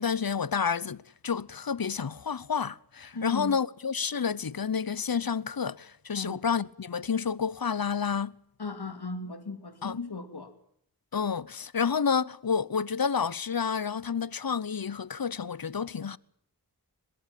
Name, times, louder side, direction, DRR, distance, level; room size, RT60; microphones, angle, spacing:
voice 1, 0.0-8.3 9.8-10.0 11.1-16.2, left 6 dB, 65° left, 0.9 m, -29 dB
voice 2, 3.1-3.6 6.1-6.4 8.6-10.5, left 3 dB, 85° left, 2.5 m, -36 dB
22.5 x 21.5 x 7.5 m
wide cardioid pair, 40°, 38 cm